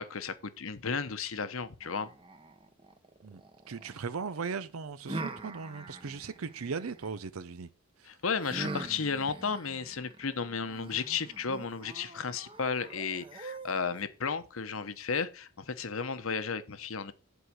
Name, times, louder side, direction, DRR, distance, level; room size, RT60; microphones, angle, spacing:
voice 1, 0.0-2.1 8.0-17.1, left 5 dB, 70° left, 1.0 m, -34 dB
sound 1, 1.8-4.0 5.1-7.1 8.4-14.0, right 2 dB, 25° right, 1.1 m, -43 dB
voice 2, 3.7-7.7 8.0-8.2, right 5 dB, 75° right, 0.6 m, -38 dB
10.0 x 4.9 x 6.2 m
head